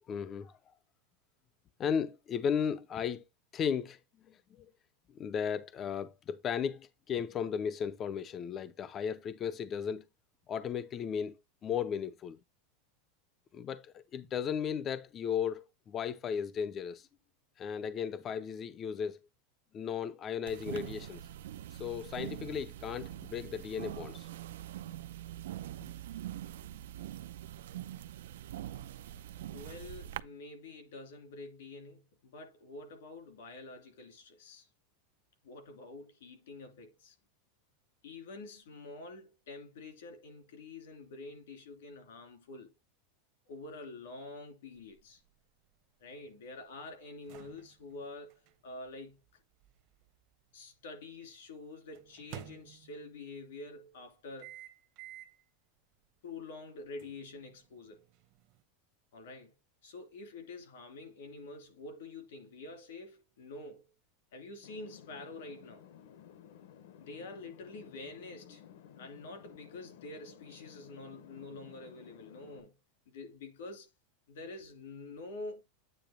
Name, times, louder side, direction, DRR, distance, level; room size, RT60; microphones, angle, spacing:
voice 1, 0.1-0.7 1.8-3.2 3.5-4.0 4.3-4.7 5.1-10.1 10.5-12.4 13.5-17.1 17.6-19.2 19.7-21.2 21.7-24.3, left 7 dB, 20° left, 0.3 m, -35 dB
sound 1, 20.5-30.2, right 12 dB, 90° right, 0.5 m, -43 dB
voice 2, 29.5-34.7 35.4-37.2 38.0-42.8 43.5-45.2 46.0-49.2 50.5-54.6 56.2-58.0 59.1-59.5 59.8-63.9 64.3-65.9 67.0-68.6 69.0-72.7 73.1-73.9 74.3-75.6, left 3 dB, 85° left, 2.9 m, -47 dB
sound 2, 44.7-50.9 51.9-53.3 54.4-55.4 55.9-56.1 57.0-58.6, right 14 dB, 40° right, 0.8 m, -53 dB
sound 3, 64.6-72.6, left 9 dB, 65° left, 0.8 m, -55 dB
8.8 x 3.0 x 5.0 m
supercardioid pair, 180°, 0 cm